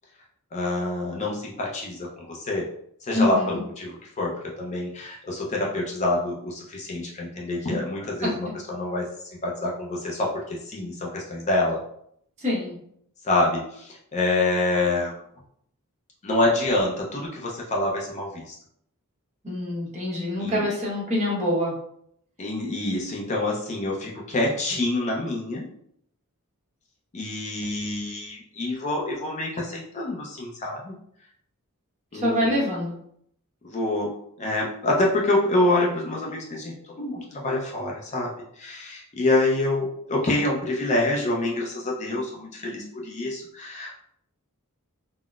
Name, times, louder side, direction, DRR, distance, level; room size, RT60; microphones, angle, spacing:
voice 1, 0.5-2.7 3.0-9.1 9.4-11.8 13.2-15.1 16.2-18.5 20.4-20.7 22.4-25.7 27.1-30.9 32.1-32.6 33.6-34.1 34.4-43.9, left 2 dB, 30° left, -2 dB, 0.4 m, -26 dB
voice 2, 3.1-3.6 8.2-8.3 12.4-12.7 19.4-21.7 32.1-32.9, left 1 dB, 30° right, -5 dB, 1.0 m, -25 dB
3.8 x 2.0 x 2.3 m, 0.69 s
head